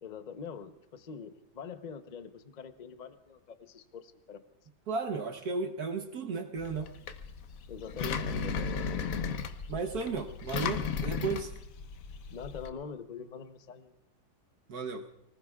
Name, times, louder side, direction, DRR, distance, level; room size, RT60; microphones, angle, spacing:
voice 1, 0.0-4.4 7.7-8.9 12.3-14.0, left 6 dB, 35° left, 8 dB, 0.8 m, -44 dB
voice 2, 4.9-6.9 9.7-11.5 14.7-15.1, right 4 dB, 65° right, 4 dB, 1.5 m, -34 dB
Engine, 6.6-12.7, left 5 dB, 60° left, 1.1 m, -35 dB
29.5 x 19.5 x 2.4 m, 0.81 s
omnidirectional pair, 1.8 m